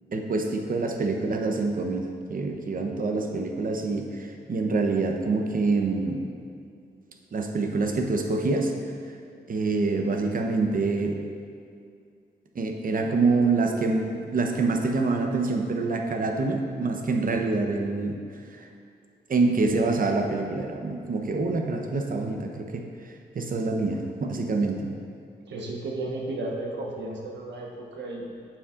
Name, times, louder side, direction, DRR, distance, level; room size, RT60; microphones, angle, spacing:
voice 1, 0.1-2.0 2.3-6.2 7.3-8.7 9.5-11.2 12.5-18.2 18.5-18.7 19.3-22.8 23.3-24.9, right 3 dB, 50° right, 3 dB, 0.8 m, -26 dB
voice 2, 25.5-28.4, right 2 dB, 80° right, -1 dB, 1.2 m, -34 dB
8.8 x 7.2 x 2.5 m, 2.4 s
cardioid pair, 65°, 18 cm